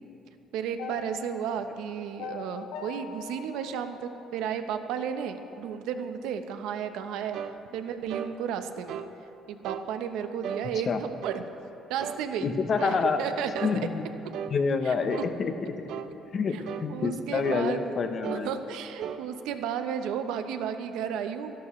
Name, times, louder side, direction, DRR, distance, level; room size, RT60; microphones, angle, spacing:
voice 1, 0.5-7.4 7.7-9.0 9.5-11.4 11.9-12.5 12.8-13.7 14.8-14.9 16.5-16.6 16.9-18.0 18.3-21.5, right 8 dB, 80° right, 8 dB, 0.8 m, -33 dB
sound 1, 0.8-5.0, left 7 dB, 80° left, 0.7 m, -42 dB
sound 2, 7.3-7.6 8.1-8.3 8.9-9.1 9.6-9.9 10.4-10.7 11.2-11.5 12.0-12.2 12.8-13.0 13.6-13.8 14.3-14.6 15.1-15.3 15.9-16.1 16.7-16.9 17.4-17.7 18.2-18.5 19.0-19.2, right 8 dB, 60° right, 0.5 m, -36 dB
voice 2, 12.4-13.2 13.6-14.1 14.5-15.5 16.3-18.5, left 5 dB, 35° left, 7 dB, 0.8 m, -27 dB
25.0 x 12.0 x 3.2 m, 2.9 s
cardioid pair, 160°, 0 cm